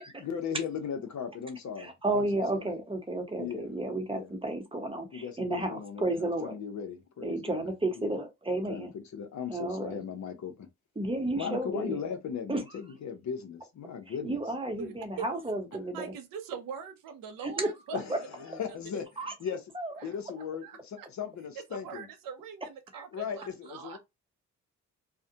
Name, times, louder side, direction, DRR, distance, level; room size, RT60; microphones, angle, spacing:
voice 1, 0.2-2.7 3.4-3.7 4.1-4.3 5.1-7.6 8.0-8.1 8.7-10.7 11.3-14.4 17.9-19.1 19.4-19.6 20.0-22.1 23.1-24.0, left 7 dB, 60° left, 0.7 m, -37 dB
voice 2, 1.8-6.5 7.2-8.9 9.5-10.0 11.0-12.0 12.5-12.6 14.1-16.1 17.4-18.2 19.2-20.0 22.9-23.0, right 2 dB, 15° right, 0.8 m, -32 dB
voice 3, 14.8-15.2 15.9-18.1 18.5-18.6 20.0-20.1 20.6-21.1 21.7-24.0, right 6 dB, 90° right, 0.7 m, -42 dB
2.3 x 2.1 x 2.7 m
cardioid pair, 70°, 33 cm